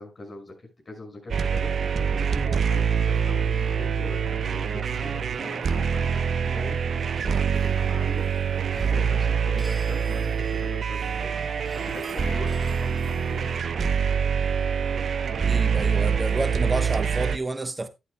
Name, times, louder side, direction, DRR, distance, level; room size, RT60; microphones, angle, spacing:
voice 1, 0.0-11.4 11.7-13.5, left 2 dB, 45° left, 5.9 m, -42 dB
sound 1, 1.3-17.4, right 6 dB, 60° right, 0.8 m, -25 dB
sound 2, 7.5-13.6, equal, 15° right, 3.6 m, -47 dB
voice 2, 15.5-17.9, right 2 dB, 30° right, 0.9 m, -30 dB
11.0 x 10.5 x 2.2 m
hypercardioid pair, 40°, 0 cm